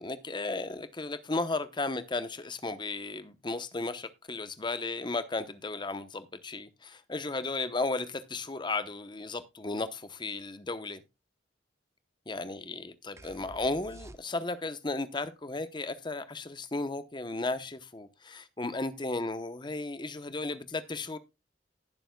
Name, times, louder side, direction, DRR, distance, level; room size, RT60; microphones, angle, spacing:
voice 1, 0.0-11.0 12.3-21.2, left 3 dB, 25° left, 0.8 m, -35 dB
sound 1, 13.2-14.7, right 1 dB, 15° right, 0.5 m, -50 dB
19.5 x 6.9 x 2.2 m
head